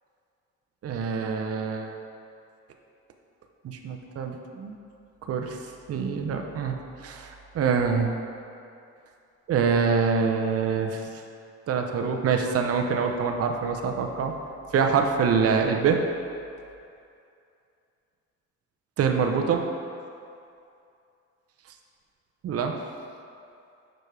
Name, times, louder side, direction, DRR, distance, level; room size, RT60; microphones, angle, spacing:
voice 1, 0.8-2.0 3.6-4.8 5.3-5.6 5.9-6.8 7.0-8.1 9.5-11.0 11.7-14.3 14.7-16.0 19.0-19.6 22.4-22.7, right 6 dB, 50° right, 4 dB, 0.6 m, -25 dB
6.4 x 5.1 x 3.3 m, 2.5 s
cardioid pair, 90°, 30 cm